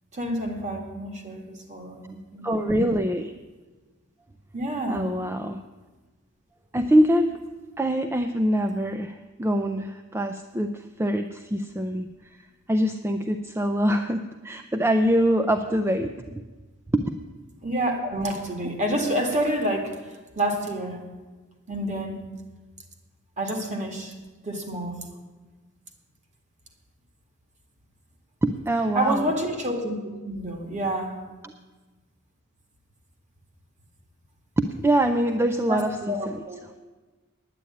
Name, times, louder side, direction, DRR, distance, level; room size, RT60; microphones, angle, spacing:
voice 1, 0.1-2.8 4.5-5.1 17.6-21.0 21.7-22.2 23.4-24.1 24.4-25.0 28.9-30.0 30.2-31.2 35.7-36.6, right 1 dB, 35° right, 3 dB, 2.0 m, -28 dB
voice 2, 2.4-3.3 4.9-5.6 6.7-7.4 7.8-16.4 16.9-17.0 28.4-29.3 34.6-36.4, equal, 10° right, 7 dB, 0.4 m, -24 dB
9.8 x 9.6 x 8.5 m, 1.3 s
head